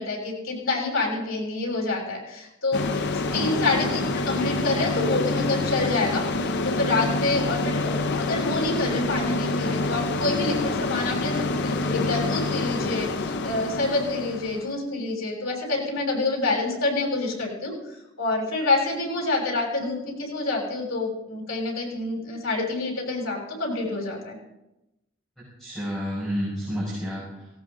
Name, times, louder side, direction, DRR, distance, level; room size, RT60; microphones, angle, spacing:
voice 1, 0.0-2.8 3.3-6.2 6.6-17.7 18.2-24.4, left 3 dB, 80° left, 0 dB, 6.4 m, -27 dB
sound 1, 2.7-14.7, left 2 dB, 55° left, 0.7 m, -27 dB
voice 2, 3.3-3.7 25.4-27.5, equal, ahead, -7 dB, 5.7 m, -31 dB
18.0 x 17.5 x 3.9 m, 0.92 s
head